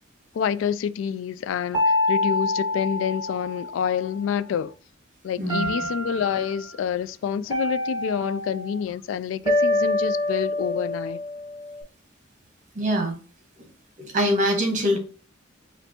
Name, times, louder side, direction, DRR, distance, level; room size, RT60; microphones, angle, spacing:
voice 1, 0.3-4.7 5.2-11.2, left 8 dB, 85° left, 0.3 m, -28 dB
sound 1, 1.7-4.1 5.5-6.5 7.5-8.8 9.4-11.8, left 2 dB, 20° right, 1.3 m, -26 dB
voice 2, 5.4-5.7 12.7-13.2 14.0-15.0, equal, 40° right, 1.3 m, -23 dB
5.2 x 2.5 x 2.8 m
head